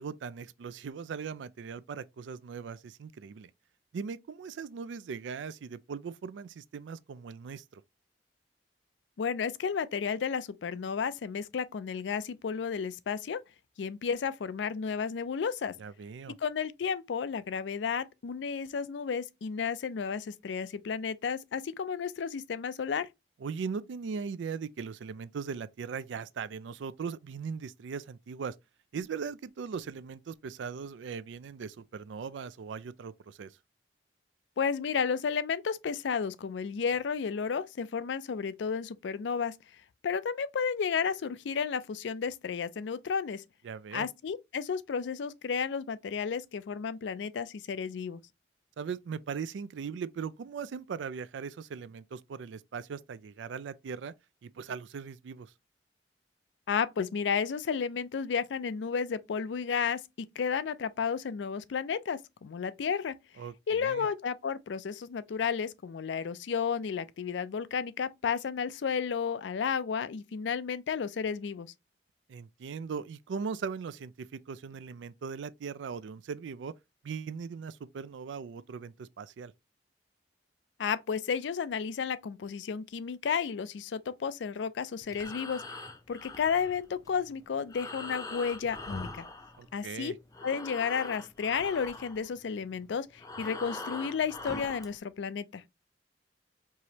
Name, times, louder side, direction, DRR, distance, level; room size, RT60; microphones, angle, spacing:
voice 1, 0.0-3.5 3.9-7.8 15.8-16.4 23.4-28.5 28.9-33.5 43.6-44.1 48.8-54.1 54.4-55.5 63.4-64.1 72.3-76.7 77.0-79.5 89.6-90.1, right 6 dB, 90° right, 0.4 m, -39 dB
voice 2, 9.2-13.4 13.8-15.7 16.4-23.1 34.6-39.5 40.0-43.4 43.9-48.2 56.7-63.1 63.7-71.7 80.8-85.6 86.1-89.2 89.7-90.1 90.4-95.6, left 6 dB, 80° left, 0.4 m, -32 dB
Breathing, 85.0-90.0 90.3-95.0, left 2 dB, 20° left, 0.5 m, -43 dB
4.7 x 2.9 x 2.7 m
head